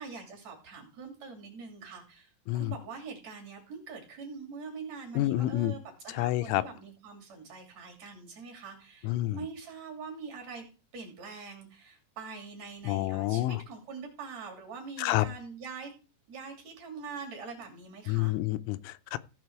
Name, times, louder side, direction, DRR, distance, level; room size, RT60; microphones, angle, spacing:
voice 1, 0.0-10.6 10.9-15.9 16.3-18.3, right 5 dB, 40° right, 3.3 m, -44 dB
voice 2, 5.2-5.7 6.1-6.6 9.0-9.4 12.9-13.6 15.0-15.3 18.1-19.2, left 16 dB, 85° left, 3.4 m, -28 dB
16.0 x 6.0 x 4.7 m
omnidirectional pair, 5.9 m